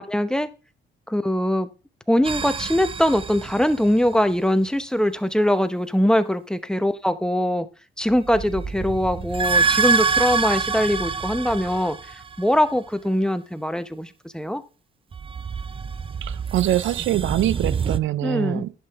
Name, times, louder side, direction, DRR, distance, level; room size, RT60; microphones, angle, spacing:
voice 1, 0.1-0.5 1.1-1.7 2.1-7.7 8.0-14.6 18.2-18.6, equal, 5° left, 0.8 m, -22 dB
sound 1, 2.2-4.2 8.1-12.6 15.1-18.0, right 5 dB, 25° right, 0.5 m, -26 dB
voice 2, 16.2-18.7, right 13 dB, 75° right, 0.5 m, -24 dB
11.0 x 7.7 x 3.5 m
cardioid pair, 90°, 20 cm